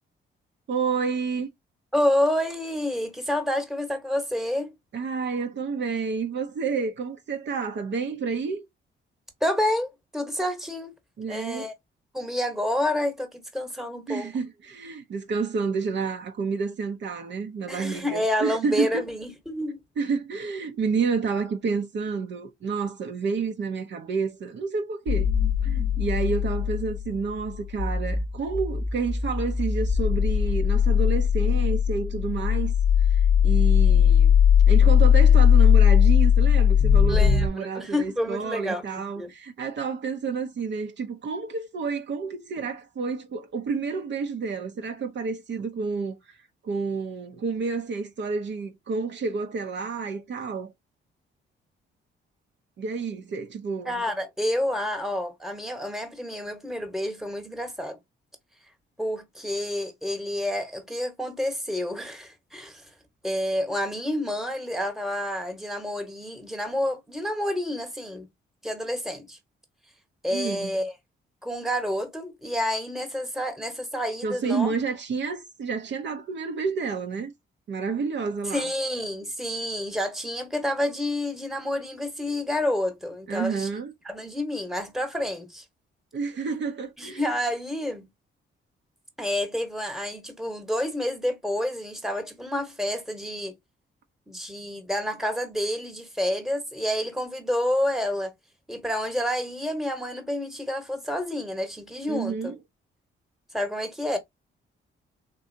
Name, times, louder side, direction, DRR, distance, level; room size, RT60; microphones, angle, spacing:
voice 1, 0.7-1.5 4.9-8.6 11.2-11.7 14.1-19.0 20.0-25.3 25.6-32.7 33.1-34.3 34.7-46.4 46.6-50.7 52.8-54.0 70.3-70.7 74.2-77.3 77.7-78.7 83.3-83.9 86.1-87.3 102.1-102.6, right 5 dB, 60° right, 0.7 m, -29 dB
voice 2, 1.9-4.7 9.4-10.9 11.3-11.7 12.1-14.3 17.7-19.8 37.1-38.8 39.2-39.3 53.9-58.0 59.0-62.8 63.2-68.3 68.6-69.4 70.2-70.9 71.4-74.7 78.5-83.7 84.0-85.6 87.0-88.1 89.2-93.5 94.3-98.3 98.7-102.5 103.5-104.2, left 1 dB, ahead, 1.1 m, -29 dB
sound 1, 25.1-37.5, left 8 dB, 45° left, 0.5 m, -19 dB
3.8 x 2.7 x 2.6 m
cardioid pair, 85°, 21 cm